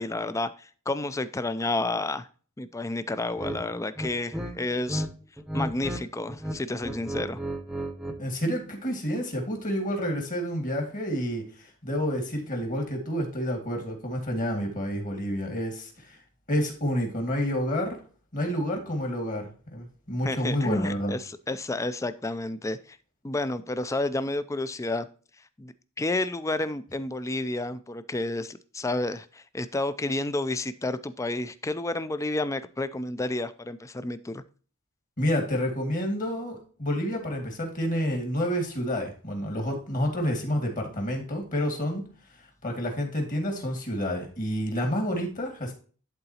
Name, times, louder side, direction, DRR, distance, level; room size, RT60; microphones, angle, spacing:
voice 1, 0.0-2.3 2.6-5.1 5.5-7.5 20.2-23.0 23.2-25.1 25.4-34.4, left 2 dB, 15° left, 13 dB, 0.4 m, -30 dB
sound 1, 3.4-3.6 3.9-5.1 5.4-6.0 6.3-8.2, right 1 dB, 5° right, 0.8 m, -33 dB
voice 2, 8.2-16.2 16.5-18.0 18.3-21.2 35.2-42.0 42.6-45.7, equal, 40° left, 3 dB, 2.1 m, -29 dB
11.5 x 3.9 x 2.8 m, 0.40 s
head